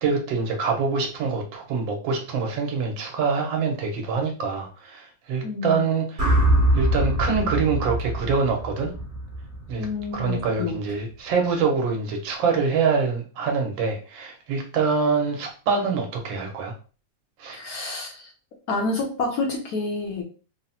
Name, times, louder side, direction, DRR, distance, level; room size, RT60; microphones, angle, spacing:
voice 1, 0.0-6.3 6.7-8.9 9.7-9.9 10.1-16.7 17.4-17.6, right 5 dB, 90° right, 2 dB, 1.5 m, -25 dB
voice 2, 5.4-5.8 9.8-10.7 17.5-18.3 18.7-20.2, left 3 dB, 65° left, 1 dB, 1.0 m, -28 dB
sound 1, 6.2-10.4, right 1 dB, 55° right, 1.4 m, -23 dB
3.8 x 2.0 x 2.7 m, 0.36 s
omnidirectional pair, 2.0 m